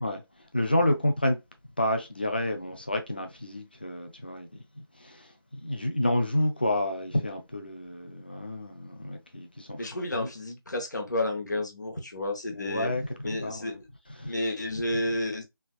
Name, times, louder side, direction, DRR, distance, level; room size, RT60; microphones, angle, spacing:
voice 1, 0.5-1.4 1.8-9.9 10.1-10.3 12.5-13.8 14.2-14.3, left 1 dB, 25° left, 0.4 m, -29 dB
voice 2, 9.8-12.9 13.2-13.7 14.3-15.4, left 1 dB, 50° left, 0.9 m, -31 dB
3.3 x 2.7 x 2.3 m
figure-of-eight pair, 165°, 13 cm